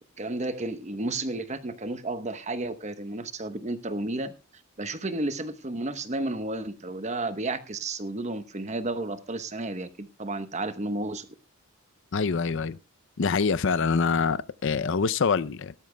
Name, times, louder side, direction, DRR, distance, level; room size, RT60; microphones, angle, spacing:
voice 1, 0.2-4.3 4.8-11.3, right 2 dB, 30° right, 1.0 m, -32 dB
voice 2, 12.1-12.8 13.2-15.7, left 5 dB, 60° left, 0.5 m, -25 dB
17.5 x 13.0 x 2.2 m
head